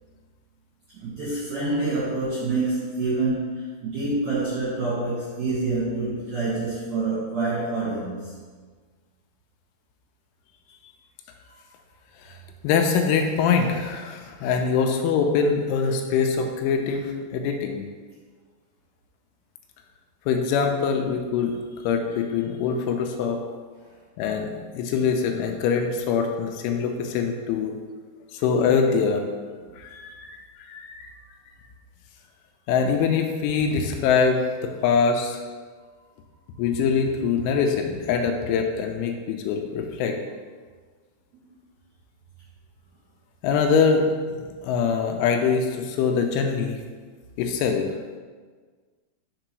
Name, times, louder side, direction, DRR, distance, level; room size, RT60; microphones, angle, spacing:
voice 1, 0.9-8.3, right 3 dB, 65° right, -10 dB, 1.8 m, -27 dB
voice 2, 12.6-17.9 20.3-21.6 21.8-23.4 24.2-27.8 28.3-29.2 29.8-31.1 32.7-35.4 36.6-40.2 43.4-44.1 44.6-46.8 47.4-47.9, left 6 dB, 85° left, 4 dB, 2.9 m, -23 dB
6.7 x 3.8 x 4.6 m, 1.5 s
omnidirectional pair, 5.6 m